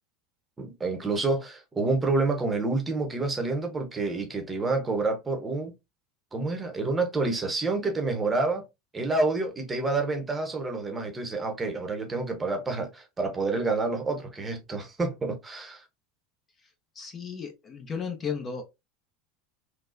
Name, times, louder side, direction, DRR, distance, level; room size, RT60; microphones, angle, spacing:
voice 1, 0.6-5.7 6.3-8.6 8.9-15.8, right 3 dB, 20° right, 1.0 m, -28 dB
voice 2, 17.0-18.6, left 6 dB, 30° left, 0.9 m, -34 dB
3.9 x 2.3 x 2.6 m
hypercardioid pair, 95°, 0 cm